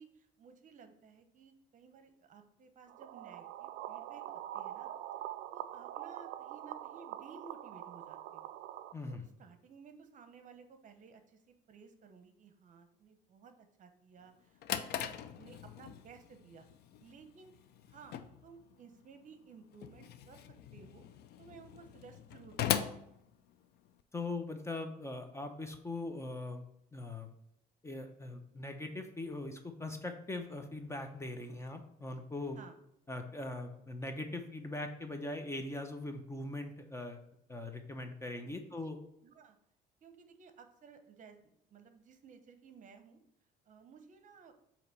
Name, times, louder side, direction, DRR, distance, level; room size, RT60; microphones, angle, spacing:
voice 1, 0.0-4.2 4.5-4.9 5.5-8.5 9.1-16.7 17.0-17.5 17.9-21.1 21.4-23.0 32.5-32.8 38.8-38.9 39.2-39.6 40.0-43.2 43.7-44.6, right 5 dB, 50° right, 7 dB, 0.9 m, -56 dB
sound 1, 2.9-8.9, right 12 dB, 80° right, 0.4 m, -44 dB
voice 2, 8.9-9.2 24.1-26.6 26.9-27.3 27.8-32.6 33.1-37.2 37.5-39.0, left 2 dB, 15° left, 6 dB, 0.7 m, -41 dB
Drawer open or close, 14.3-24.0, left 10 dB, 70° left, 0.5 m, -41 dB
7.7 x 3.0 x 5.5 m, 0.77 s
cardioid pair, 110°, 17 cm